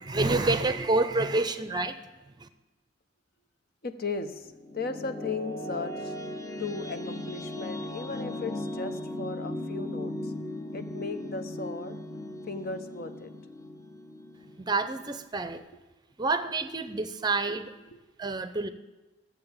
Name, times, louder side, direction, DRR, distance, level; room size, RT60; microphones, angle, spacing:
voice 1, 0.0-2.0 2.4-2.5 14.6-15.6 16.2-17.7 18.2-18.7, right 2 dB, 20° right, 11 dB, 0.6 m, -28 dB
voice 2, 3.8-6.1 6.6-10.3 10.7-12.0 12.5-13.3 17.9-18.0, left 4 dB, 50° left, 9 dB, 0.9 m, -36 dB
sound 1, 4.3-15.2, left 1 dB, 20° left, 0.8 m, -37 dB
14.0 x 7.1 x 8.8 m, 1.1 s
head